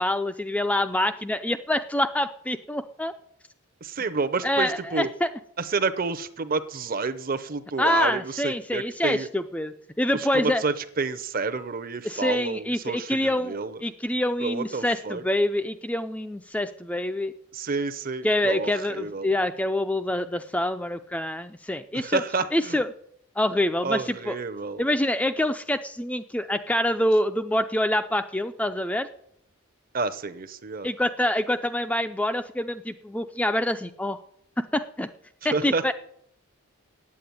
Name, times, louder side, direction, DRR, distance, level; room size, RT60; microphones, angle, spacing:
voice 1, 0.0-3.1 4.4-5.3 7.8-10.6 12.0-17.3 18.2-22.2 22.5-22.9 23.4-24.4 24.8-29.1 30.8-34.2 34.7-35.1 35.4-35.9, left 1 dB, 5° left, 8 dB, 0.4 m, -26 dB
voice 2, 3.8-5.1 5.6-9.3 10.1-13.8 14.4-15.2 17.5-19.3 21.9-22.8 23.8-24.8 29.9-30.9 35.5-35.9, right 4 dB, 40° right, 13 dB, 0.7 m, -29 dB
8.7 x 8.6 x 9.3 m, 0.70 s
head